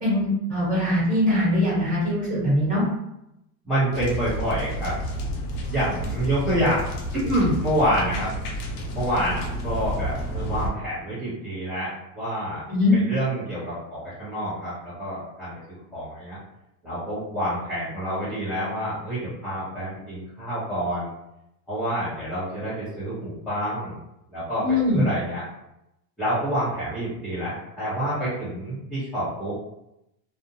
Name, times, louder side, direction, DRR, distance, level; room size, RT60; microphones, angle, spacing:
voice 1, 0.0-2.8 12.7-12.9 24.6-25.0, left 1 dB, 15° right, -7 dB, 1.2 m, -22 dB
voice 2, 3.6-5.0 5.7-8.3 8.9-12.6 12.9-15.6 15.9-16.4 16.8-21.1 21.7-24.0 24.3-25.4 26.2-29.6, equal, ahead, -15 dB, 0.6 m, -27 dB
sound 1, 3.9-10.7, equal, 85° left, 0.7 m, -30 dB
2.5 x 2.0 x 2.7 m, 0.84 s
supercardioid pair, 155°, 47 cm